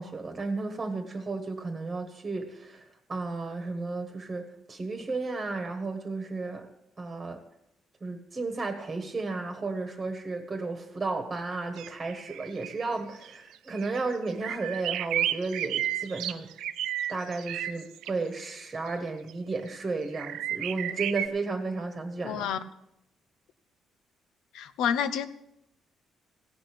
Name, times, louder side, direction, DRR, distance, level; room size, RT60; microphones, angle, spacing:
voice 1, 0.0-6.7 7.0-7.4 8.0-16.5 17.1-22.5, right 3 dB, 20° right, 6 dB, 1.4 m, -33 dB
sound 1, 11.8-12.9 13.2-13.3 13.8-14.0 14.3-18.1 19.3-19.4 20.1-21.3, right 11 dB, 85° right, 0.6 m, -32 dB
voice 2, 22.2-22.6 24.5-25.3, left 8 dB, 90° left, 12 dB, 0.9 m, -28 dB
16.0 x 6.3 x 8.5 m, 0.83 s
cardioid pair, 145°, 0 cm